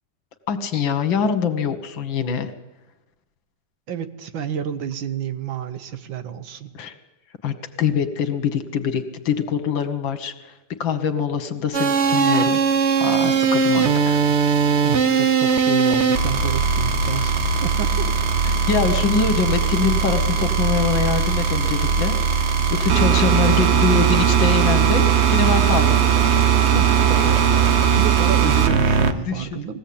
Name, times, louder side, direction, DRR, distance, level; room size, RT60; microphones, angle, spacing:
voice 1, 0.5-2.5 6.7-7.0 7.4-12.6 13.0-14.2 18.4-26.0 29.1-29.6, left 6 dB, 70° left, 9 dB, 2.1 m, -24 dB
voice 2, 3.9-6.7 14.8-17.4 17.6-18.1 26.7-29.8, right 8 dB, 70° right, 10 dB, 1.9 m, -30 dB
sound 1, 11.7-29.1, right 7 dB, 45° right, 0.9 m, -19 dB
20.5 x 16.0 x 8.6 m, 1.1 s
omnidirectional pair, 2.2 m